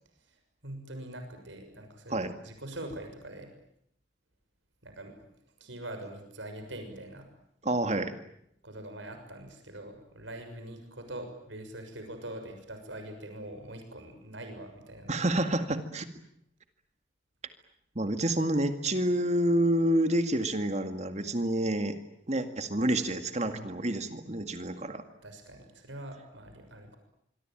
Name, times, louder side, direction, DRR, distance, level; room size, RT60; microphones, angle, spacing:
voice 1, 0.6-3.5 4.8-5.3 5.6-7.3 8.6-15.2 23.5-23.8 25.2-27.0, right 1 dB, 75° right, 6 dB, 6.6 m, -43 dB
voice 2, 7.6-8.2 15.1-16.1 18.0-22.0 22.3-25.0, right 1 dB, 35° right, 8 dB, 2.1 m, -28 dB
26.0 x 24.0 x 9.1 m, 0.74 s
head